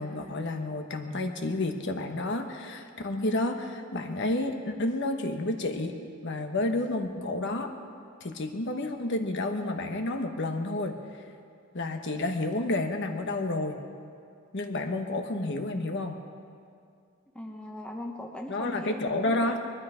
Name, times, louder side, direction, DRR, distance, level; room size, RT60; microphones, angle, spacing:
voice 1, 0.0-6.0 6.2-7.7 8.2-11.0 11.7-13.8 14.5-16.2 18.5-19.6, left 2 dB, 55° left, 5 dB, 1.1 m, -30 dB
voice 2, 17.3-19.6, left 1 dB, 5° left, 1 dB, 1.0 m, -39 dB
21.5 x 12.5 x 5.0 m, 2.3 s
head